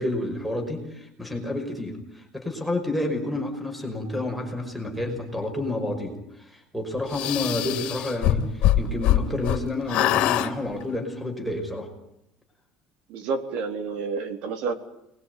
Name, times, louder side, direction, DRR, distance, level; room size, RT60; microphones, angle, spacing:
voice 1, 0.0-11.9, left 1 dB, ahead, 5 dB, 5.5 m, -30 dB
sound 1, 7.1-9.6 9.9-10.5, left 13 dB, 55° left, 2.8 m, -23 dB
voice 2, 13.1-14.7, right 4 dB, 60° right, 6 dB, 3.9 m, -29 dB
29.0 x 21.5 x 9.4 m, 0.82 s
cardioid pair, 165°, 2 cm